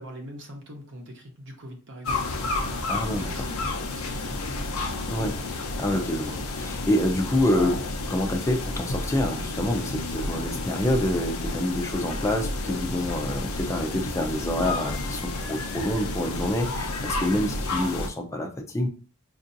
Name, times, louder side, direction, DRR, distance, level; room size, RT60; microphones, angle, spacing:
voice 1, 0.0-2.3 3.2-4.5, equal, 55° right, 2 dB, 0.8 m, -43 dB
sound 1, 2.1-18.1, left 2 dB, 90° left, 0.7 m, -31 dB
voice 2, 2.9-3.5 5.1-5.4 5.8-18.9, left 1 dB, 15° left, 3 dB, 0.5 m, -27 dB
5.3 x 2.6 x 2.6 m, 0.39 s
head